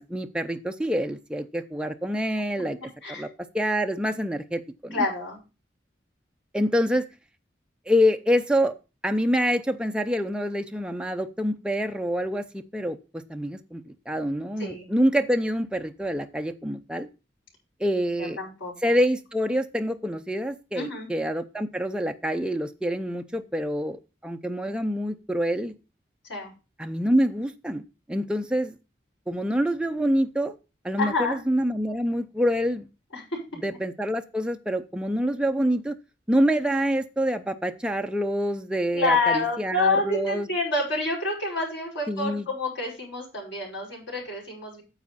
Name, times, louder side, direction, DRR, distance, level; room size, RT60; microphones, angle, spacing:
voice 1, 0.0-2.8 3.1-3.3 3.5-5.1 6.5-7.1 7.9-8.7 9.0-17.1 17.8-18.4 18.8-25.7 26.8-27.8 28.1-28.7 29.3-30.6 30.8-32.9 33.6-35.9 36.3-40.5 42.1-42.5, equal, 5° right, 6 dB, 0.6 m, -26 dB
voice 2, 4.9-5.4 14.6-14.9 18.2-19.0 20.7-21.1 26.3-26.5 31.0-31.4 33.1-33.4 38.9-44.8, left 3 dB, 85° left, -3 dB, 5.7 m, -28 dB
9.7 x 7.0 x 4.2 m, 0.30 s
head